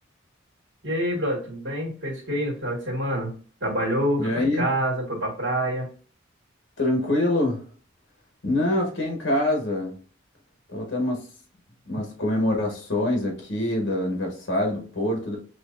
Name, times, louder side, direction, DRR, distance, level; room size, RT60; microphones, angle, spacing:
voice 1, 0.8-3.3 3.6-5.9, right 1 dB, 70° right, -3 dB, 2.0 m, -27 dB
voice 2, 4.2-4.7 6.8-7.6 8.4-10.0 10.7-11.2 11.9-15.4, left 1 dB, 60° left, 0 dB, 1.3 m, -25 dB
6.2 x 3.0 x 2.5 m, 0.41 s
head